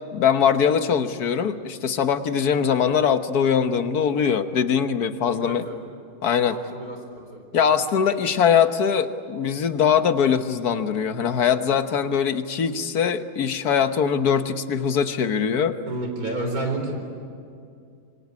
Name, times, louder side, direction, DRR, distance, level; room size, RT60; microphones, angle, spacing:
voice 1, 0.1-5.7 6.2-6.6 7.5-15.8, left 7 dB, 90° left, 9 dB, 1.7 m, -22 dB
voice 2, 5.3-5.7 6.5-7.0 15.9-16.9, right 2 dB, 70° right, 3 dB, 4.8 m, -30 dB
25.5 x 24.5 x 9.6 m, 2.4 s
omnidirectional pair, 1.6 m